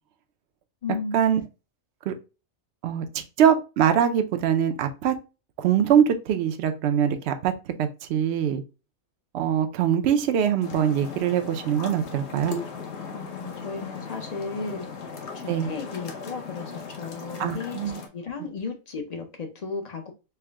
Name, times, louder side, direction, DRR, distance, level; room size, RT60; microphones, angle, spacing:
voice 1, 0.8-1.2 13.1-14.9 15.3-17.8 18.1-20.1, left 4 dB, 40° left, 0.6 m, -34 dB
voice 2, 3.4-5.1 5.6-7.5 7.8-8.6 9.3-12.6 15.5-15.7 17.4-18.0, right 9 dB, 65° right, 0.7 m, -23 dB
sound 1, 10.6-18.1, left 4 dB, 60° left, 1.0 m, -38 dB
4.5 x 2.1 x 3.3 m
omnidirectional pair, 1.4 m